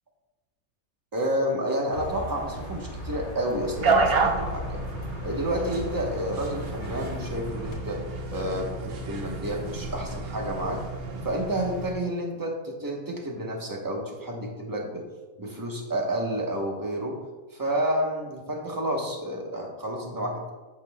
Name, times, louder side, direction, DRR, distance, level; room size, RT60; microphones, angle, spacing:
voice 1, 1.1-4.9 5.2-8.0 8.3-10.8 11.2-15.1 15.4-17.2 17.5-20.5, right 1 dB, 15° right, 0 dB, 1.0 m, -30 dB
sound 1, 1.9-7.8, equal, 50° left, 2.0 m, -39 dB
sound 2, 3.7-11.9, right 3 dB, 50° right, 0.9 m, -30 dB
8.9 x 7.4 x 2.3 m, 1.2 s
omnidirectional pair, 1.5 m